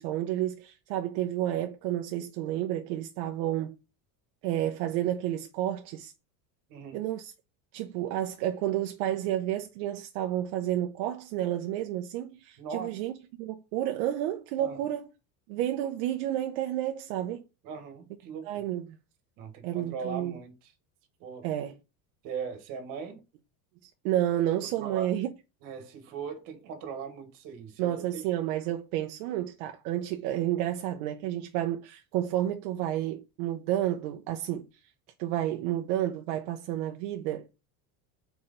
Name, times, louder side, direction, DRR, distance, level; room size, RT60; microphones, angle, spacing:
voice 1, 0.0-3.8 4.4-6.1 6.9-7.3 7.7-13.1 13.4-15.1 15.5-17.4 18.5-18.9 19.6-20.4 21.4-21.7 23.8-25.3 27.8-34.7 35.2-37.5, right 12 dB, 80° right, 0.8 m, -30 dB
voice 2, 12.6-13.0 14.6-14.9 17.6-18.6 19.4-20.7 21.2-21.5 22.2-23.2 24.8-25.1 25.6-28.2, right 6 dB, 50° right, 1.5 m, -40 dB
4.6 x 4.3 x 5.2 m
cardioid pair, 180°, 41 cm